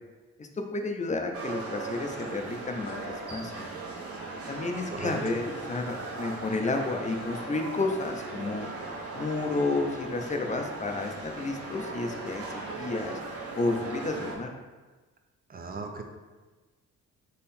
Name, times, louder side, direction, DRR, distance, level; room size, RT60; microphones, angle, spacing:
voice 1, 0.4-3.7 4.5-8.7 9.1-13.2 13.5-14.5, left 3 dB, 25° left, 4 dB, 0.6 m, -31 dB
sound 1, 1.3-14.4, right 3 dB, 50° right, 1.1 m, -38 dB
voice 2, 15.5-16.0, right 4 dB, 30° right, 3 dB, 0.6 m, -37 dB
3.8 x 3.1 x 4.2 m, 1.3 s
cardioid pair, 90°, 30 cm